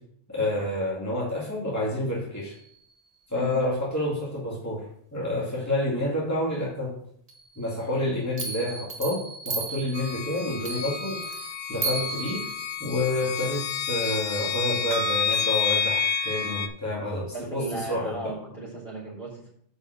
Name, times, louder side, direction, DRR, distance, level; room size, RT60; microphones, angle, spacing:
voice 1, 0.3-2.5 3.3-4.8 5.1-6.9 7.6-12.5 12.8-18.2, left 1 dB, 15° left, -6 dB, 2.0 m, -29 dB
sound 1, 2.5-2.7 7.3-7.9 8.4-13.4 14.9-15.3, right 4 dB, 35° right, 1.5 m, -35 dB
sound 2, 9.9-16.7, left 7 dB, 75° left, 0.8 m, -29 dB
voice 2, 17.3-19.5, right 2 dB, 55° left, -5 dB, 4.3 m, -36 dB
6.2 x 5.4 x 6.4 m, 0.66 s
omnidirectional pair, 1.1 m